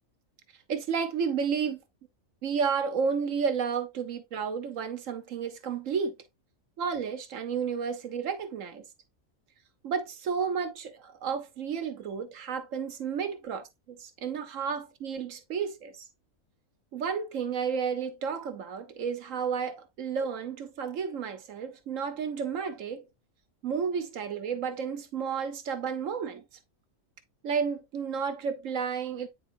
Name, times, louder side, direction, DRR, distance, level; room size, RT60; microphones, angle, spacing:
voice 1, 0.7-1.8 2.4-6.2 6.8-8.8 9.8-15.9 16.9-23.0 23.6-26.4 27.4-29.3, right 6 dB, 70° right, 1.3 m, -32 dB
9.0 x 4.0 x 2.6 m
omnidirectional pair, 1.4 m